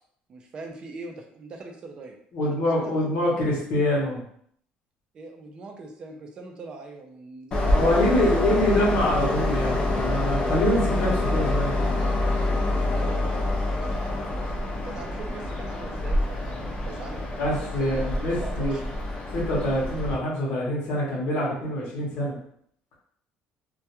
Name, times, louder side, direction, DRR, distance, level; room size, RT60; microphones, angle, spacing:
voice 1, 0.3-2.1 2.4-3.1 5.1-7.7 8.2-8.7 12.9-14.6 14.8-18.8, right 3 dB, 30° right, 2 dB, 0.4 m, -41 dB
voice 2, 2.3-4.2 7.7-11.7 17.4-18.8 19.3-22.4, left 1 dB, 60° left, -5 dB, 0.8 m, -25 dB
Train, 7.5-20.1, left 2 dB, 30° left, 0.4 m, -26 dB
2.2 x 2.2 x 2.8 m, 0.65 s
cardioid pair, 175°, 3 cm